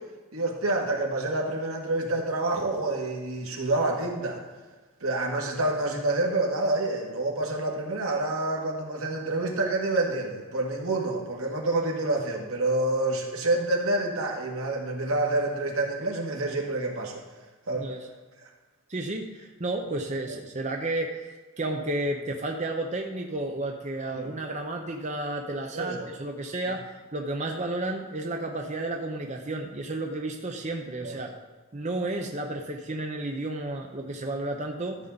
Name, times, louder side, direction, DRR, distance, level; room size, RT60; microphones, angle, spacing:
voice 1, 0.3-4.4 5.0-17.1 17.7-17.9 20.3-20.4 24.2-24.3 25.7-26.1 31.0-31.3, right 2 dB, 80° right, 0 dB, 2.0 m, -28 dB
voice 2, 17.7-18.1 18.9-31.3 31.7-35.0, right 2 dB, 35° right, 2 dB, 0.7 m, -32 dB
13.5 x 7.2 x 4.0 m, 1.3 s
head